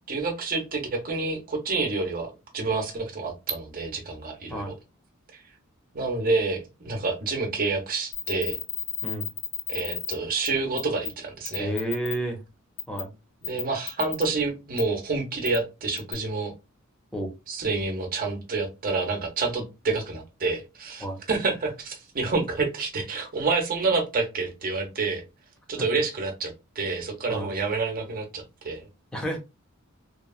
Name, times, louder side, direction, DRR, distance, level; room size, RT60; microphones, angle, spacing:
voice 1, 0.1-4.7 5.3-5.4 5.9-8.6 9.7-11.7 13.4-16.5 17.5-25.2 25.7-28.9, right 3 dB, 45° right, 2 dB, 0.8 m, -28 dB
sound 1, 8.1-10.1 10.4-10.5 10.8-11.1 11.5-12.2 12.8-13.0 13.4-14.2 14.8-14.9 15.4-15.6 16.0-16.1, left 9 dB, 65° left, 1.3 m, -32 dB
voice 2, 11.6-12.4 12.9-13.1 17.1-17.3 21.0-21.2 27.3-27.5 29.1-29.4, right 1 dB, 5° left, 2 dB, 0.7 m, -30 dB
3.0 x 2.3 x 2.3 m, 0.26 s
head